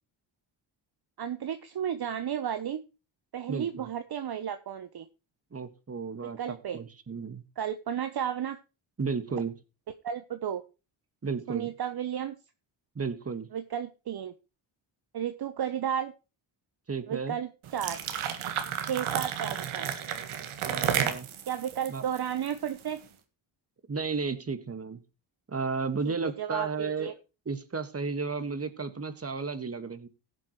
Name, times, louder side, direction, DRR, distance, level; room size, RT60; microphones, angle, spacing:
voice 1, 1.2-2.8 3.3-5.1 6.2-6.8 7.6-8.6 10.0-10.6 11.5-12.4 13.5-14.3 15.1-16.1 17.1-18.0 18.9-19.9 21.5-23.0 26.0-27.1, right 9 dB, 50° right, 9 dB, 1.0 m, -33 dB
voice 2, 3.5-3.9 5.5-7.4 9.0-9.5 11.2-11.7 13.0-13.5 16.9-17.4 20.6-21.3 21.9-22.0 23.9-25.0 25.5-27.1 27.5-30.1, right 4 dB, 30° right, 11 dB, 1.8 m, -33 dB
sound 1, 17.6-22.9, right 9 dB, 85° right, 1.7 m, -32 dB
17.5 x 7.6 x 3.2 m, 0.30 s
cardioid pair, 80°, 48 cm